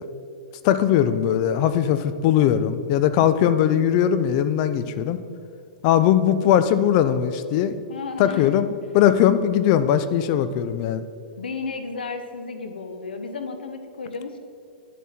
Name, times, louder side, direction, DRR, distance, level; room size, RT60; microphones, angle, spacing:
voice 1, 0.6-5.2 5.8-7.7 8.2-8.7 8.9-11.0, left 10 dB, 45° left, 12 dB, 0.5 m, -20 dB
voice 2, 7.9-8.6 11.4-14.4, left 4 dB, 85° left, 7 dB, 0.8 m, -33 dB
10.0 x 7.3 x 4.3 m, 2.5 s
hypercardioid pair, 120°, 5 cm